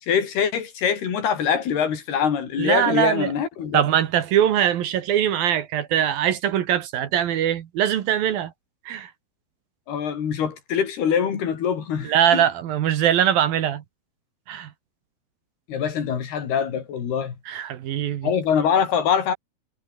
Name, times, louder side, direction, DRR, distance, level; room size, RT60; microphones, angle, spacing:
voice 1, 0.0-3.9 9.9-12.5 15.7-17.4 18.2-19.3, left 7 dB, 85° left, 5.5 m, -24 dB
voice 2, 2.6-3.3 3.7-8.5 8.9-9.1 12.0-13.8 14.5-14.7 17.5-18.3, right 10 dB, 70° right, 3.2 m, -22 dB
omnidirectional pair, 4.5 m